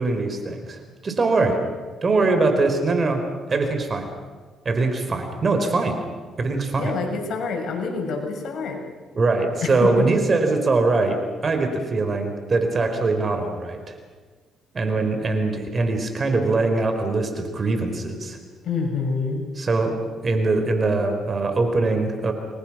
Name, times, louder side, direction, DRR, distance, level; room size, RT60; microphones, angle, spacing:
voice 1, 0.0-1.6 2.0-3.2 3.5-4.1 4.6-6.0 6.4-6.9 9.1-11.2 11.4-13.9 14.7-18.4 19.6-20.0 20.2-22.3, right 3 dB, 40° right, 6 dB, 4.4 m, -22 dB
voice 2, 6.8-8.8 9.6-9.9 18.6-19.4, left 4 dB, 65° left, 2 dB, 6.3 m, -27 dB
30.0 x 22.0 x 6.2 m, 1.5 s
cardioid pair, 90°, 0 cm